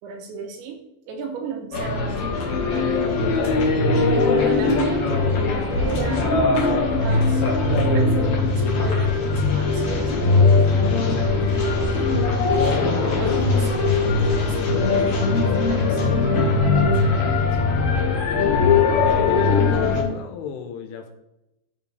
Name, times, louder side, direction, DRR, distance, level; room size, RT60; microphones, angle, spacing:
voice 1, 0.0-2.2 2.6-2.9 4.4-7.4 7.9-10.6 11.6-12.3 12.6-17.4, right 3 dB, 70° right, 3 dB, 3.1 m, -35 dB
sound 1, 1.7-20.0, left 3 dB, 55° left, 1.9 m, -20 dB
voice 2, 3.6-4.1 19.0-21.1, left 6 dB, 80° left, 6 dB, 3.3 m, -34 dB
13.0 x 7.3 x 3.4 m, 0.87 s
omnidirectional pair, 5.9 m